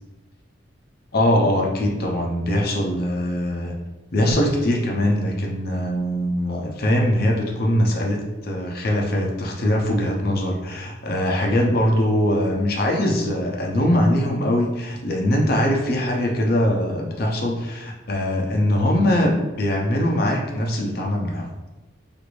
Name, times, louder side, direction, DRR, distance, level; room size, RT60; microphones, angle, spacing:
voice 1, 1.1-3.7 4.1-21.5, left 1 dB, 50° left, -1 dB, 0.5 m, -22 dB
2.5 x 2.5 x 3.1 m, 1.1 s
head